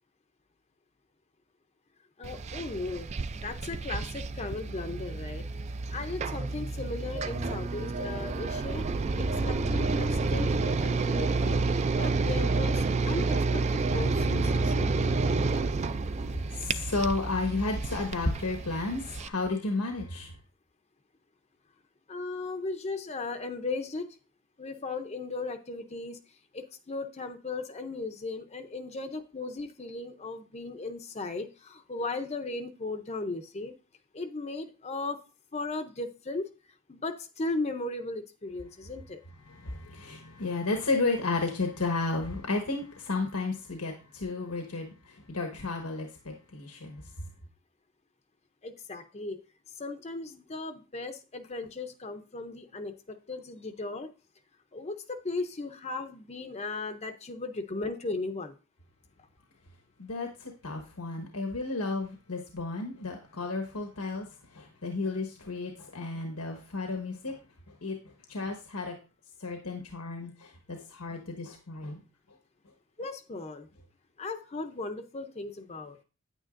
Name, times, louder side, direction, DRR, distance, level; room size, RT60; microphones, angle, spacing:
voice 1, 2.2-3.1 3.4-5.4 5.9-8.8 9.2-11.6 11.9-14.9 22.1-24.2 24.6-26.2 26.5-33.8 34.1-35.2 35.5-36.5 36.9-39.2 48.6-49.4 49.7-54.1 54.7-58.5 73.0-73.7 74.2-76.0, left 3 dB, 30° left, 7 dB, 0.6 m, -37 dB
sound 1, 2.2-19.3, right 3 dB, 30° right, 0.3 m, -30 dB
Telephone, 7.1-15.8, left 1 dB, 60° right, 1.9 m, -37 dB
voice 2, 15.8-20.3 39.5-47.0 60.0-67.4 67.7-68.9 69.4-72.0, left 3 dB, 90° left, 3 dB, 1.3 m, -33 dB
9.3 x 9.0 x 2.5 m, 0.33 s
head